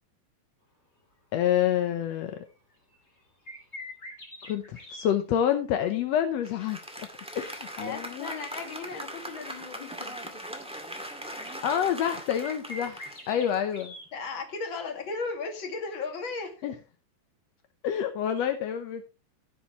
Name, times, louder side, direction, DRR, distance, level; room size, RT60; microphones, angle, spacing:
voice 1, 1.3-2.3 4.4-6.8 7.3-8.4 11.4-13.9 16.6-16.7 17.8-19.1, left 10 dB, 75° left, 1.6 m, -28 dB
sound 1, 1.6-1.9 2.3-5.1 7.1-8.3 8.7-8.8 10.3-10.4 10.9-12.1 12.4-14.6 14.9-15.0 16.5-16.6, left 1 dB, 20° left, 3.0 m, -44 dB
Applause, 6.4-14.1, equal, 5° right, 0.9 m, -40 dB
voice 2, 7.8-10.4 14.1-16.8, left 4 dB, 40° left, 2.4 m, -36 dB
16.0 x 7.2 x 3.0 m
omnidirectional pair, 3.9 m